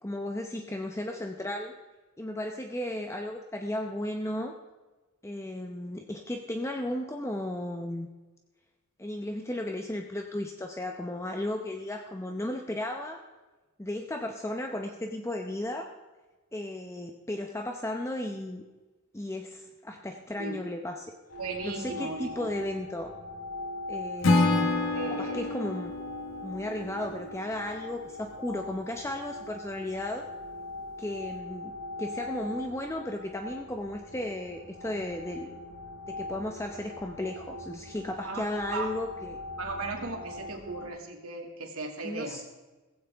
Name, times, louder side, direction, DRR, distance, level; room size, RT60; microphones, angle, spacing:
voice 1, 0.0-1.7 2.2-4.5 5.2-8.1 9.0-13.2 13.8-15.9 16.5-18.6 19.1-21.1 21.6-23.1 23.9-24.7 25.1-26.0 26.4-30.3 31.0-31.7 32.0-35.5 36.1-39.4 42.0-42.4, left 1 dB, 15° left, 3 dB, 0.7 m, -35 dB
sound 1, 21.3-40.9, left 2 dB, 85° left, 4.7 m, -42 dB
voice 2, 21.4-22.5 24.4-24.6 24.9-25.4 38.2-38.9 39.6-42.4, right 3 dB, 85° right, 2 dB, 2.2 m, -37 dB
Acoustic guitar / Strum, 24.2-27.4, left 2 dB, 65° left, 1.7 m, -27 dB
16.5 x 15.5 x 3.5 m, 1.2 s
head